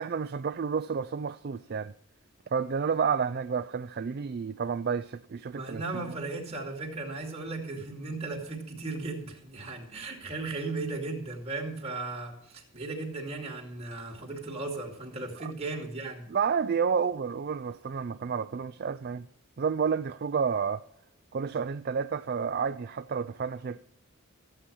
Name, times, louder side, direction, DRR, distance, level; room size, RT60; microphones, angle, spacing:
voice 1, 0.0-1.9 2.5-5.8 16.3-19.3 19.6-20.8 21.3-23.8, right 6 dB, 45° right, 0.4 m, -30 dB
voice 2, 5.5-16.3, right 3 dB, 30° right, 2.5 m, -36 dB
14.5 x 8.5 x 5.5 m
head